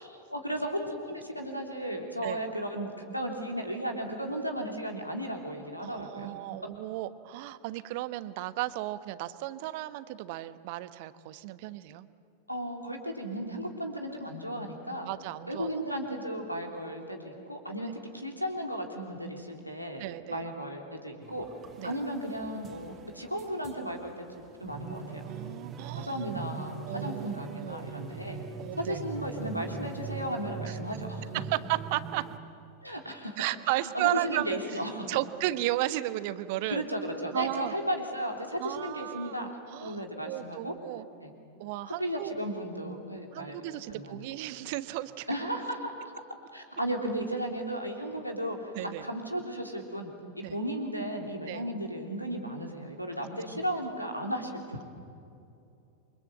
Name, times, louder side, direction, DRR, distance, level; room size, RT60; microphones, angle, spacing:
voice 1, 0.3-6.3 12.5-15.1 15.5-20.0 20.3-21.5 21.8-25.2 26.0-28.4 28.8-31.2 32.8-33.4 33.7-35.2 36.7-40.7 41.2-41.4 41.9-43.6 43.9-44.3 45.3-46.1 46.5-54.8, equal, 90° left, 2 dB, 3.4 m, -35 dB
voice 2, 5.8-12.1 15.0-15.7 20.0-20.4 21.8-22.0 25.2-26.2 26.9-27.9 28.6-29.0 30.7-30.8 31.3-32.3 33.4-34.6 35.1-36.8 37.3-37.7 38.6-41.0 41.6-42.3 43.3-45.3 48.7-49.1 50.4-50.6 51.5-51.6, right 16 dB, 50° right, 13 dB, 1.2 m, -34 dB
sound 1, 21.2-32.4, right 5 dB, 25° right, 2.4 m, -41 dB
28.5 x 24.5 x 8.0 m, 2.6 s
figure-of-eight pair, 90°, 0 cm